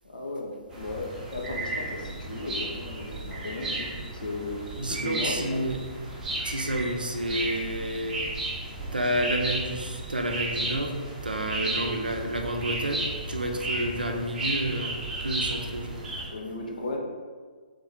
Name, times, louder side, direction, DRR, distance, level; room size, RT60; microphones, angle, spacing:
voice 1, 0.0-5.6 16.3-17.0, left 2 dB, 65° left, 0 dB, 0.8 m, -36 dB
sound 1, 0.7-16.3, right 2 dB, 10° right, 0.8 m, -34 dB
voice 2, 4.8-5.8 6.4-8.2 8.9-15.0 15.2-16.0, right 1 dB, 80° right, 3 dB, 0.6 m, -30 dB
3.5 x 3.5 x 3.4 m, 1.5 s
figure-of-eight pair, 125°, 5 cm